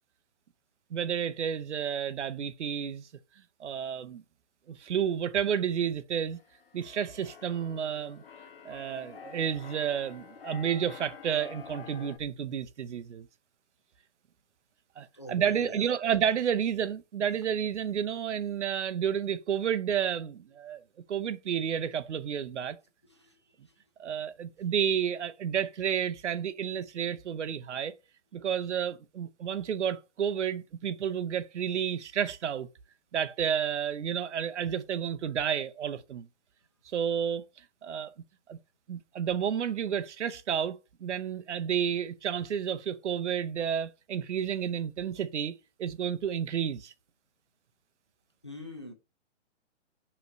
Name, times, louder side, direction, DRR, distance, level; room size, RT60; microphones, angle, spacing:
voice 1, 0.9-3.1 3.6-4.2 4.7-6.4 6.7-8.2 8.6-13.3 15.0-20.8 21.1-22.8 24.0-27.9 28.3-32.7 33.1-36.3 36.9-37.5 37.8-38.1 38.5-38.6 38.9-46.9, right 8 dB, 70° right, 0.7 m, -31 dB
Keyboard (musical), 6.3-12.2, left 6 dB, 50° left, 0.8 m, -48 dB
voice 2, 15.2-16.1 48.4-48.9, left 1 dB, 25° left, 0.5 m, -44 dB
5.7 x 3.1 x 5.2 m
hypercardioid pair, 180°, 37 cm